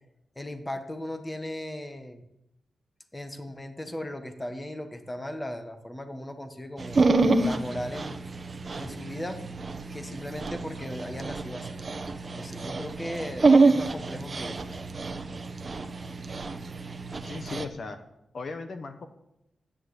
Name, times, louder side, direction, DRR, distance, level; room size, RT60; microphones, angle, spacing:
voice 1, 0.3-2.2 3.1-7.0 7.4-8.2 8.8-9.4 9.9-11.7 12.2-14.7 15.3-15.4, left 1 dB, 10° left, 7 dB, 1.3 m, -37 dB
Dog, 6.8-17.6, right 3 dB, 30° right, 1.0 m, -27 dB
voice 2, 17.2-18.0 18.3-19.1, left 3 dB, 40° left, 8 dB, 1.1 m, -37 dB
13.5 x 10.0 x 8.1 m, 0.83 s
wide cardioid pair, 180°, 0 cm